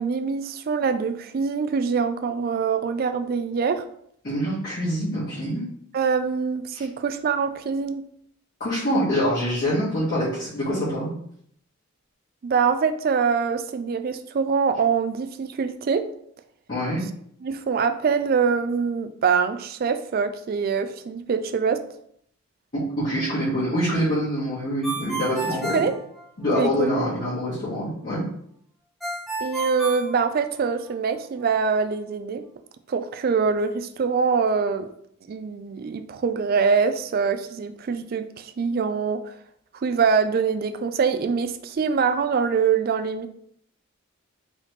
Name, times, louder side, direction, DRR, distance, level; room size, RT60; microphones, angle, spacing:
voice 1, 0.0-3.8 5.9-8.0 12.4-16.1 17.4-21.8 25.6-25.9 26.5-27.1 29.4-32.4 32.9-34.9 35.3-39.3 39.7-43.3, right 5 dB, 45° right, 10 dB, 0.3 m, -24 dB
voice 2, 4.2-5.7 6.7-6.8 8.6-11.1 16.7-17.0 22.7-25.8 26.4-28.2, equal, 45° left, -12 dB, 1.7 m, -25 dB
Ringtone, 24.8-26.8 29.0-30.9, right 3 dB, ahead, 0.7 m, -31 dB
4.0 x 3.2 x 3.2 m, 0.68 s
head